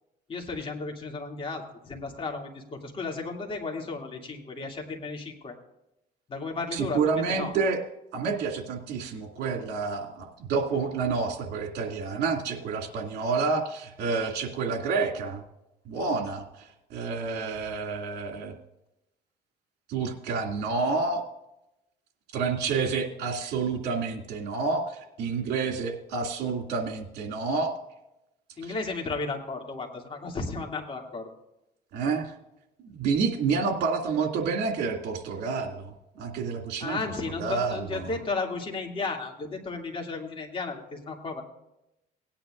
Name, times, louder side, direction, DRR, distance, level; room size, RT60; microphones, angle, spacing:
voice 1, 0.3-5.6 6.3-7.5 28.6-31.3 36.8-41.4, left 3 dB, 30° left, 0 dB, 2.6 m, -34 dB
voice 2, 6.7-7.8 8.1-15.4 15.9-16.4 16.9-18.5 19.9-21.2 22.3-27.7 28.6-28.7 31.9-32.3 32.9-37.0 37.4-38.1, right 4 dB, 75° right, 1 dB, 2.4 m, -29 dB
18.5 x 10.0 x 2.5 m, 0.87 s
cardioid pair, 110°, 17 cm